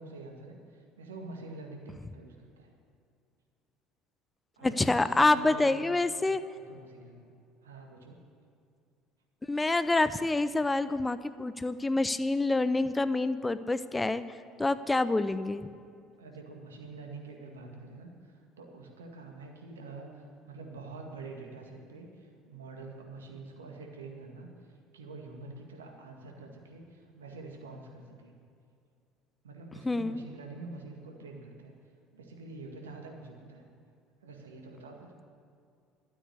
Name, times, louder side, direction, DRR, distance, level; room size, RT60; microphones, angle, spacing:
voice 1, 0.0-2.7 4.6-5.8 6.5-7.3 7.6-8.2 16.2-28.3 29.4-31.7 32.1-33.6 34.2-35.1, right 3 dB, 80° right, 2 dB, 1.9 m, -46 dB
voice 2, 4.6-6.4 9.5-15.7 29.8-30.2, left 2 dB, 15° left, 14 dB, 0.6 m, -27 dB
12.5 x 8.6 x 9.9 m, 2.4 s
figure-of-eight pair, 60°, 0 cm